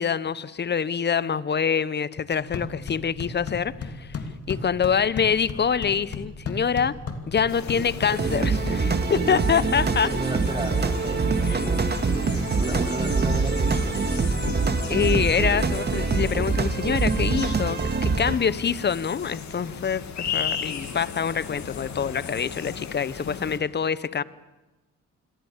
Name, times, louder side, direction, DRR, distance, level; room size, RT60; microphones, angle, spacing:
voice 1, 0.0-4.2 4.5-7.0 7.3-10.1 11.5-11.6 14.9-24.2, left 7 dB, 35° left, 18 dB, 1.0 m, -25 dB
sound 1, 2.3-9.3, left 4 dB, 50° left, 2.9 m, -36 dB
sound 2, 7.5-23.6, left 7 dB, 65° left, 3.1 m, -36 dB
sound 3, 8.1-18.4, right 4 dB, 35° right, 2.1 m, -24 dB
voice 2, 8.9-9.7 10.0-14.3 15.0-15.1, right 1 dB, 15° right, 3 dB, 4.8 m, -35 dB
28.0 x 22.0 x 7.4 m, 1.1 s
cardioid pair, 90°, 30 cm